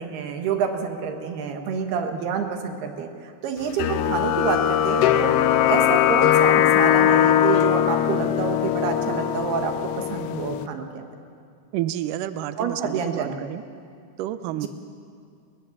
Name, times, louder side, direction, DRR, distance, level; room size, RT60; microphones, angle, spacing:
voice 1, 0.0-3.1 3.4-9.7 10.1-11.1 12.6-13.4 14.6-14.7, right 6 dB, 75° right, 5 dB, 3.4 m, -28 dB
sound 1, 3.8-10.7, left 11 dB, 90° left, 2.9 m, -20 dB
voice 2, 11.7-13.6 14.2-14.7, right 12 dB, 90° right, 12 dB, 1.8 m, -30 dB
21.5 x 20.5 x 7.3 m, 2.3 s
omnidirectional pair, 4.7 m